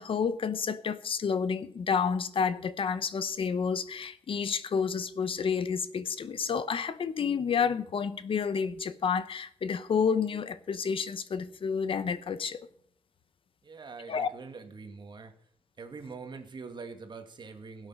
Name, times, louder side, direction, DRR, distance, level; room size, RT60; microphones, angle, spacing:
voice 1, 0.0-12.7 14.1-14.3, left 6 dB, 60° left, 0.9 m, -30 dB
voice 2, 13.6-15.3 15.8-17.9, right 4 dB, 50° right, 1.9 m, -44 dB
17.0 x 8.5 x 5.5 m
wide cardioid pair, 135°, 10 cm